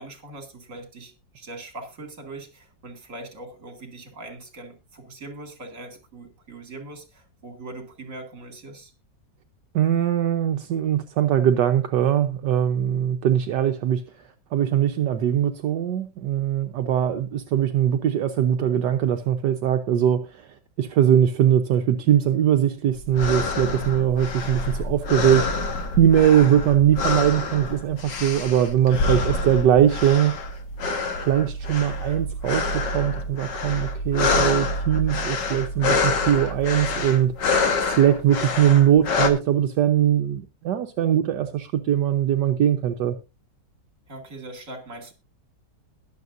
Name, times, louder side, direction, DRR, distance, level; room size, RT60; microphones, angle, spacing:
voice 1, 0.0-8.9 44.1-45.1, right 2 dB, 45° right, 2.7 m, -41 dB
voice 2, 9.7-25.5 26.0-30.4 31.2-43.2, right 10 dB, 75° right, 1.4 m, -21 dB
sound 1, 23.0-39.3, left 3 dB, 85° left, 2.1 m, -27 dB
21.5 x 7.5 x 2.6 m
omnidirectional pair, 1.9 m